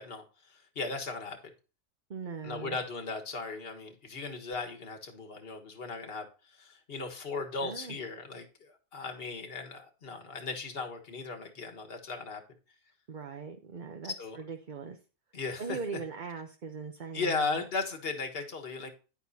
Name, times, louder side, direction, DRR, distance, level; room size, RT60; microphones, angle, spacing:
voice 1, 0.0-1.4 2.4-12.4 14.0-14.4 15.3-15.8 17.1-18.9, left 4 dB, 45° left, 4 dB, 1.7 m, -37 dB
voice 2, 2.1-2.8 7.6-8.0 13.1-15.0 15.6-17.6, right 5 dB, 40° right, 5 dB, 0.9 m, -40 dB
10.5 x 10.0 x 2.8 m, 0.33 s
omnidirectional pair, 1.4 m